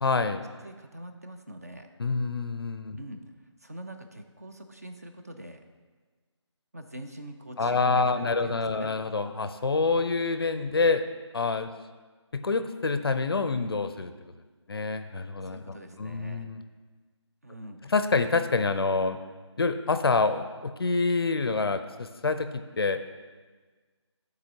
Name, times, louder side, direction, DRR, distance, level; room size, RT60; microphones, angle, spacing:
voice 1, 0.0-0.4 2.0-3.0 7.6-11.1 11.3-11.7 12.3-14.1 14.7-16.6 17.8-19.2 19.6-23.0, left 4 dB, 55° left, 9 dB, 0.4 m, -27 dB
voice 2, 0.6-1.9 3.0-3.2 3.6-5.6 6.7-8.9 15.4-16.5 17.4-17.9, right 1 dB, 35° right, 5 dB, 0.3 m, -44 dB
11.5 x 3.9 x 2.8 m, 1.4 s
figure-of-eight pair, 165°, 15 cm